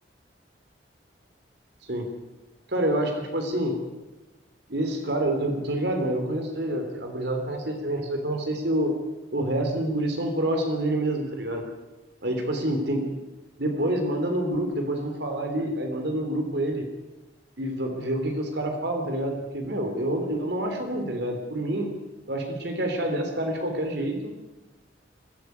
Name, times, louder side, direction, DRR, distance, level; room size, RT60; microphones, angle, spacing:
voice 1, 2.7-3.8 4.7-8.9 9.3-11.6 12.2-13.2 13.6-16.9 17.6-21.9 22.3-24.3, right 1 dB, 65° right, 4 dB, 3.6 m, -27 dB
24.0 x 15.5 x 9.5 m, 1.1 s
head